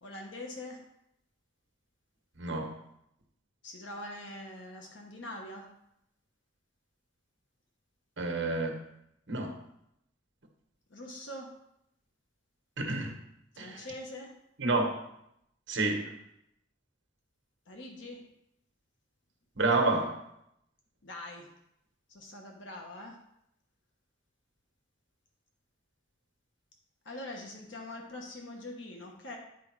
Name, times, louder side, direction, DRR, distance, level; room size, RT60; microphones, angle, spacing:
voice 1, 0.0-0.8 3.6-5.7 10.9-11.5 13.5-14.4 17.7-18.3 21.0-21.5 22.1-23.2 27.0-29.4, left 1 dB, 65° left, 1 dB, 1.2 m, -43 dB
voice 2, 2.4-2.8 8.2-8.8 9.3-9.6 12.8-13.2 13.6-13.9 14.6-15.0 15.7-16.1 19.6-20.2, right 2 dB, 65° right, 3 dB, 1.3 m, -29 dB
9.6 x 4.7 x 4.7 m, 0.78 s
head